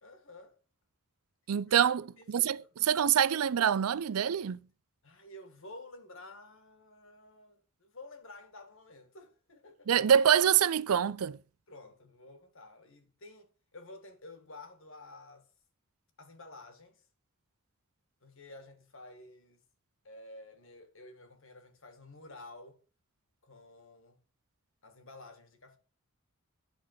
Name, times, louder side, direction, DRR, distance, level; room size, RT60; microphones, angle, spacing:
voice 1, 0.0-0.5 1.7-1.9 2.2-2.7 5.0-9.9 11.7-15.5 16.2-17.0 18.2-19.6 20.0-22.8 23.4-24.2 24.8-25.8, left 2 dB, 65° left, 1.9 m, -51 dB
voice 2, 1.5-4.6 9.9-11.4, right 9 dB, 85° right, 0.5 m, -26 dB
10.5 x 4.1 x 7.6 m
head